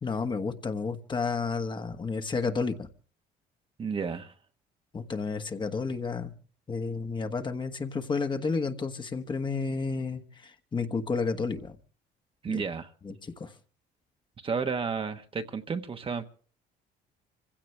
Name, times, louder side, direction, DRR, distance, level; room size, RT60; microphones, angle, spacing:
voice 1, 0.0-2.9 4.9-6.3 6.7-11.8 12.5-12.6 13.0-13.5, left 4 dB, 30° left, 1.3 m, -31 dB
voice 2, 3.8-4.3 12.4-12.9 14.4-16.3, right 5 dB, 30° right, 1.2 m, -32 dB
26.0 x 16.0 x 3.3 m
cardioid pair, 110°, 17 cm